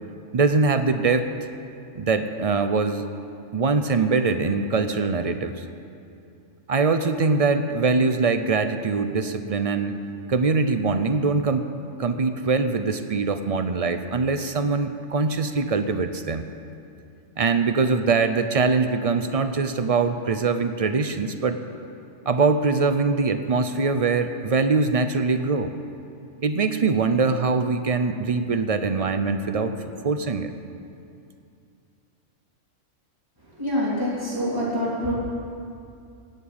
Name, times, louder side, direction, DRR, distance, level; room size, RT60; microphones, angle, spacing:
voice 1, 0.3-1.3 2.0-3.1 3.5-5.6 6.7-10.0 10.3-11.7 12.0-16.4 17.4-21.6 22.3-25.7 26.4-30.5, right 4 dB, 45° right, 9 dB, 0.5 m, -23 dB
voice 2, 33.6-35.1, equal, 15° right, -7 dB, 3.5 m, -25 dB
16.5 x 6.7 x 8.6 m, 2.5 s
omnidirectional pair, 1.3 m